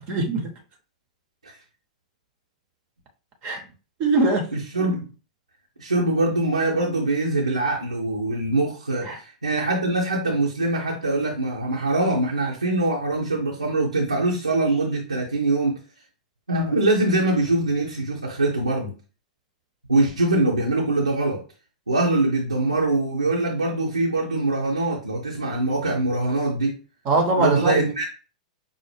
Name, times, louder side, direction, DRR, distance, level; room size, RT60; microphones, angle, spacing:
voice 1, 0.1-0.5 3.4-3.6 4.0-4.5 9.0-9.2 27.1-27.9, right 2 dB, 40° right, 0.7 m, -22 dB
voice 2, 4.5-5.1 5.8-15.8 16.5-18.9 19.9-21.4 21.9-26.8 27.4-28.0, right 2 dB, 85° right, 0.7 m, -23 dB
5.4 x 2.0 x 3.3 m
figure-of-eight pair, 95°, 4 cm